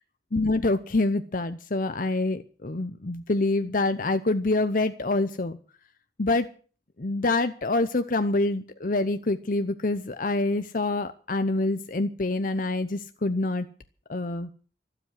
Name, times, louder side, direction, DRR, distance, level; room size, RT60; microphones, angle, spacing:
voice 1, 0.3-5.6 6.2-6.5 7.0-13.7 14.1-14.5, left 2 dB, 50° left, 10 dB, 0.8 m, -26 dB
13.0 x 12.5 x 7.6 m, 0.41 s
head